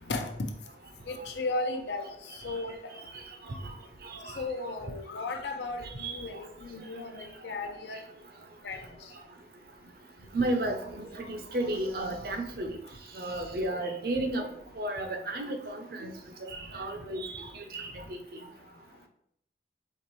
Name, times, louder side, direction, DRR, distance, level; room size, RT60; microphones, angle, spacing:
voice 1, 1.1-2.0 2.4-2.7 4.4-7.1 7.4-8.0 8.6-8.8, left 3 dB, 80° left, 5 dB, 0.6 m, -34 dB
voice 2, 3.1-3.7 4.0-4.5 6.0-6.2 10.3-12.8 13.1-14.5 14.8-16.1 16.4-18.2, right 1 dB, 55° right, 5 dB, 0.6 m, -33 dB
4.3 x 3.0 x 3.0 m, 0.72 s
head